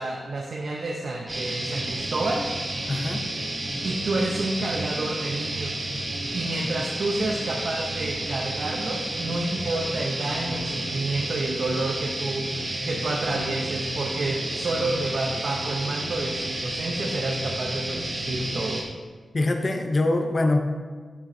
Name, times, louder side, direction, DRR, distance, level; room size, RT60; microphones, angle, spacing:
voice 1, 0.0-2.4 3.8-5.8 6.3-18.8, right 2 dB, 60° right, -1 dB, 0.6 m, -29 dB
sound 1, 1.3-18.8, right 1 dB, 30° right, 0.9 m, -31 dB
voice 2, 2.9-3.3 19.3-20.6, left 2 dB, 30° left, 5 dB, 0.6 m, -23 dB
9.0 x 6.3 x 2.6 m, 1.5 s
wide cardioid pair, 175°, 0 cm